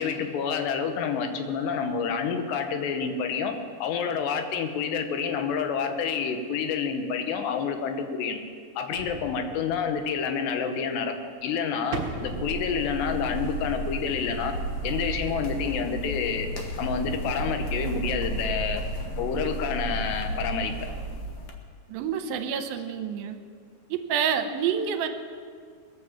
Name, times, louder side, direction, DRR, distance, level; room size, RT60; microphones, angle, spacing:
voice 1, 0.0-3.5 3.8-8.4 8.8-11.1 11.4-14.5 14.8-16.5 16.8-18.8 19.2-20.7, left 6 dB, 90° left, 6 dB, 3.2 m, -28 dB
sound 1, 8.9-10.4 11.9-13.8 14.2-14.3, right 3 dB, 60° right, 1.3 m, -37 dB
sound 2, 12.1-21.5, right 2 dB, 65° left, 1.5 m, -33 dB
voice 2, 21.9-23.4 23.9-25.1, right 7 dB, 75° right, 7 dB, 2.5 m, -28 dB
20.5 x 8.5 x 7.2 m, 2.1 s
omnidirectional pair, 4.7 m